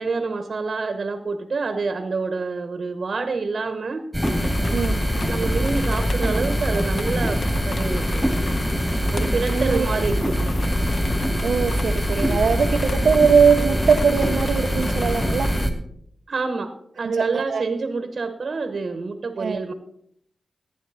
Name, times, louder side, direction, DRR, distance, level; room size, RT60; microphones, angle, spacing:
voice 1, 0.0-4.0 5.3-7.4 7.7-8.3 9.1-10.4 16.3-19.7, right 4 dB, 65° right, 9 dB, 1.0 m, -27 dB
sound 1, 4.1-15.7, equal, ahead, 2.4 m, -23 dB
sound 2, 4.2-15.7, left 4 dB, 70° left, 0.7 m, -35 dB
voice 2, 4.7-5.0 9.5-10.1 11.4-15.5 17.0-17.6 19.4-19.6, right 6 dB, 85° right, 3 dB, 0.6 m, -21 dB
15.5 x 9.4 x 4.2 m, 0.71 s
cardioid pair, 55°, 0 cm